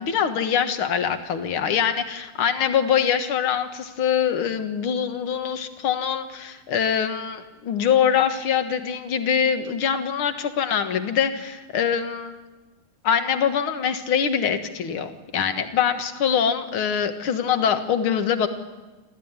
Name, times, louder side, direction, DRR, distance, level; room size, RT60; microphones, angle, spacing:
voice 1, 0.0-12.4 13.0-18.5, left 8 dB, 50° left, 8 dB, 1.9 m, -23 dB
27.0 x 14.5 x 9.6 m, 1.2 s
omnidirectional pair, 3.6 m